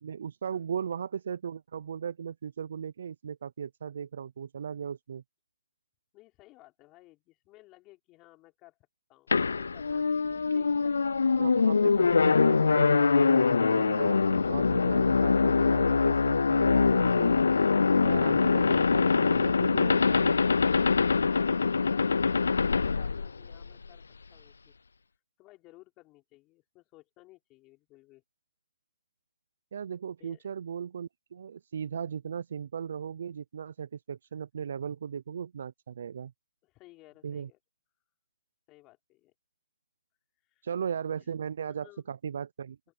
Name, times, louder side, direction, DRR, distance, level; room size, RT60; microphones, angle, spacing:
voice 1, 0.0-5.2 11.4-17.4 18.0-20.4 29.7-36.3 37.2-37.5 40.6-42.8, right 7 dB, 55° right, 0.5 m, -37 dB
voice 2, 6.1-8.8 9.1-11.6 21.2-24.0 24.3-24.7 25.1-28.2 30.2-30.5 36.6-37.6 38.7-39.3 40.4-40.7 41.2-41.3 41.7-42.0, left 19 dB, 20° left, 4.9 m, -57 dB
sound 1, 9.3-23.9, left 4 dB, 85° left, 0.3 m, -24 dB
open air
hypercardioid pair, 165°, 0 cm